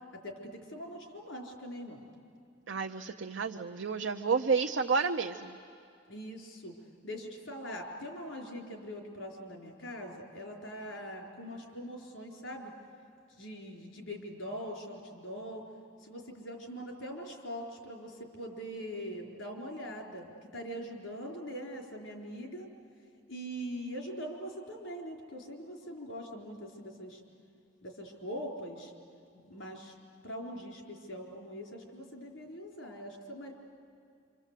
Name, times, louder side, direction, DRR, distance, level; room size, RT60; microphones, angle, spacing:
voice 1, 0.1-2.0 6.1-6.7 7.0-12.7 13.3-15.6 16.0-22.7 23.3-27.2 27.8-28.9 29.3-29.9 30.2-33.5, equal, 80° left, 1 dB, 4.2 m, -42 dB
voice 2, 2.7-5.6, right 5 dB, 75° right, 4 dB, 0.6 m, -30 dB
26.5 x 26.0 x 8.3 m, 2.3 s
head